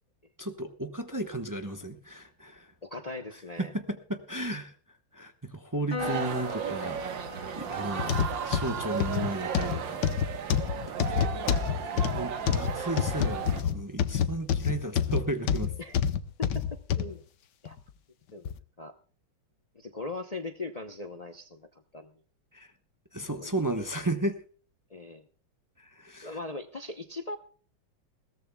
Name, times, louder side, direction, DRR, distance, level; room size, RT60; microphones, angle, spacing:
voice 1, 0.4-2.7 3.6-4.7 5.1-10.0 10.5-10.7 11.7-15.7 22.5-22.7 23.1-24.4 25.8-26.4, right 1 dB, 20° right, 5 dB, 0.5 m, -34 dB
voice 2, 2.8-3.7 15.8-16.0 16.4-17.2 17.6-17.8 18.3-18.9 19.7-21.7 21.9-22.1 23.4-23.5 24.9-25.3 26.2-27.4, left 3 dB, 90° left, 6 dB, 0.3 m, -39 dB
Piano, 5.9-12.6, left 5 dB, 25° left, 2.4 m, -44 dB
sound 1, 6.0-13.6, right 7 dB, 70° right, 1.9 m, -35 dB
sound 2, 8.0-17.1 17.7-17.8 18.5-18.6, left 8 dB, 65° left, 1.4 m, -27 dB
21.0 x 17.5 x 2.3 m, 0.42 s
omnidirectional pair, 2.2 m